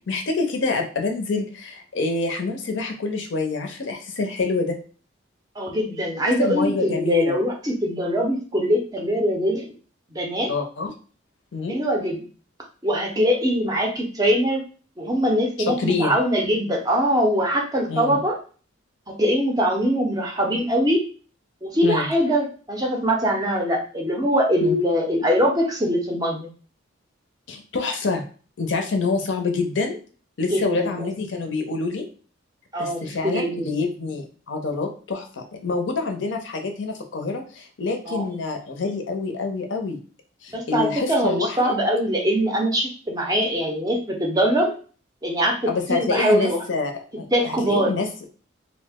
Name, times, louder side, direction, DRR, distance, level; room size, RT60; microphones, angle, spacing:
voice 1, 0.1-4.8 6.4-7.4 10.5-10.9 11.5-11.8 15.7-16.1 17.9-18.2 21.8-22.1 24.6-24.8 27.5-28.2 28.6-30.0 30.4-32.0 32.8-40.0 40.4-41.7 45.7-48.1, left 3 dB, 60° left, 4 dB, 0.5 m, -26 dB
voice 2, 5.6-9.7 10.1-10.5 11.7-12.2 12.8-14.6 15.0-18.4 19.1-21.0 21.6-26.5 30.5-31.1 32.7-33.8 38.1-38.3 40.5-44.7 45.2-46.6 47.3-48.0, equal, 20° right, 1 dB, 0.5 m, -22 dB
2.6 x 2.0 x 3.4 m, 0.39 s
head